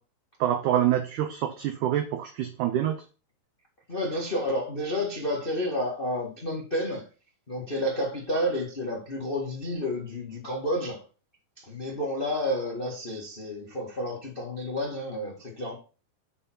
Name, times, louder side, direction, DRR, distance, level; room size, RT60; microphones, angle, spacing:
voice 1, 0.4-3.0, right 11 dB, 90° right, 1.7 m, -26 dB
voice 2, 3.9-7.0 7.5-11.0 11.6-15.7, left 1 dB, 60° left, 0.5 m, -30 dB
7.0 x 5.5 x 4.5 m
omnidirectional pair, 4.4 m